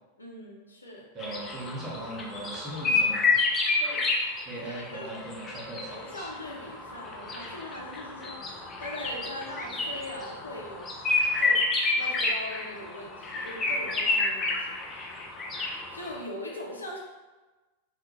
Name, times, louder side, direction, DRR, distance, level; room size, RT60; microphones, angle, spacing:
voice 1, 0.2-1.1 3.8-4.0 4.5-5.1 5.9-10.9 11.4-15.1 15.9-17.0, left 1 dB, 80° left, -2 dB, 0.5 m, -41 dB
voice 2, 1.1-3.4 4.5-6.3, right 1 dB, 25° right, -4 dB, 0.7 m, -39 dB
sound 1, 1.2-16.2, left 3 dB, 25° left, 0.4 m, -29 dB
2.3 x 2.1 x 2.9 m, 1.2 s
figure-of-eight pair, 90°, 0 cm